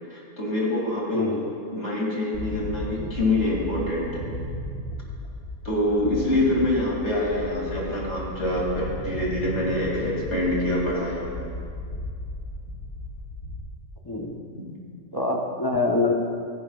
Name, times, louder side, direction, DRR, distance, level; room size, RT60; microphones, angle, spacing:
voice 1, 0.1-1.3 1.7-4.2 5.6-11.3, left 1 dB, 50° left, -3 dB, 2.9 m, -25 dB
voice 2, 1.1-1.5 6.0-6.2 14.0-14.4 15.1-16.1, left 2 dB, 20° left, 1 dB, 0.7 m, -25 dB
sound 1, 2.3-13.6, left 1 dB, 85° left, 2.6 m, -35 dB
22.0 x 10.5 x 2.4 m, 2.3 s
omnidirectional pair, 1.5 m